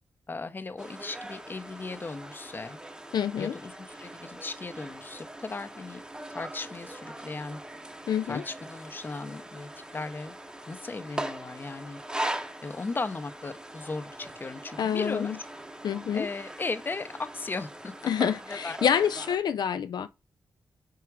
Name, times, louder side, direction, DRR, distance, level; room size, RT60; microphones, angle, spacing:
voice 1, 0.3-2.8 3.4-3.7 4.0-6.0 6.3-7.6 8.3-10.4 10.7-12.0 12.6-15.4 16.1-18.1 18.5-18.8, left 3 dB, 25° left, 0.7 m, -36 dB
sound 1, 0.8-19.4, right 1 dB, 10° right, 0.8 m, -41 dB
voice 2, 3.1-3.6 8.1-8.4 14.8-15.4 15.8-16.3 18.0-20.1, left 8 dB, 70° left, 0.4 m, -27 dB
5.9 x 4.7 x 4.7 m
wide cardioid pair, 125°, 7 cm